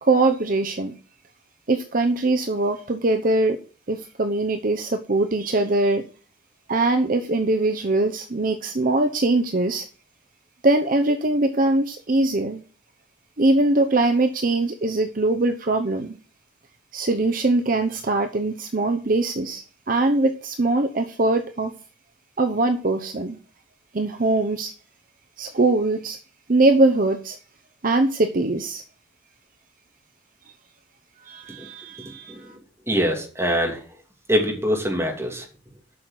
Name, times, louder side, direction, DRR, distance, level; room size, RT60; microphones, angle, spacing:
voice 1, 0.0-0.9 1.7-3.6 3.9-6.0 6.7-9.8 10.6-12.6 13.4-16.1 16.9-21.7 22.4-23.4 23.9-24.7 25.4-26.2 26.5-27.4 27.8-28.8 31.3-32.3, right 2 dB, 45° right, 6 dB, 0.8 m, -22 dB
voice 2, 32.9-33.8 34.3-35.4, equal, 15° right, 1 dB, 2.7 m, -23 dB
8.4 x 6.4 x 7.6 m, 0.39 s
head